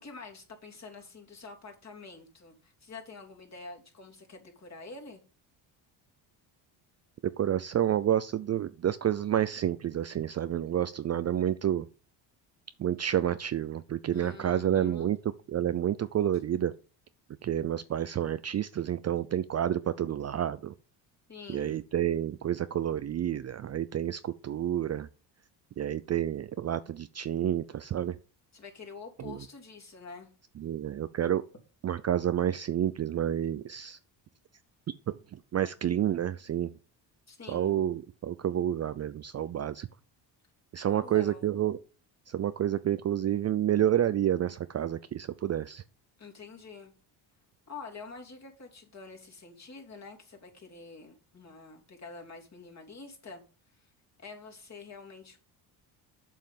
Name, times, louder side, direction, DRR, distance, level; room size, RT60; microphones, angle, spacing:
voice 1, 0.0-5.2 14.1-15.1 21.3-21.8 28.5-30.3 37.3-37.7 40.8-41.5 46.2-46.9 47.7-53.4 53.8-53.9 54.2-55.4, left 4 dB, 35° left, 3.1 m, -47 dB
voice 2, 7.4-11.9 12.8-15.2 15.5-16.7 17.4-20.7 21.5-25.1 25.8-28.2 29.3-29.4 30.6-31.4 31.8-34.0 35.1-36.7 37.5-39.9 40.7-41.8 42.3-45.8, right 10 dB, 35° right, 0.5 m, -29 dB
7.6 x 5.6 x 7.0 m
supercardioid pair, 85°, 47 cm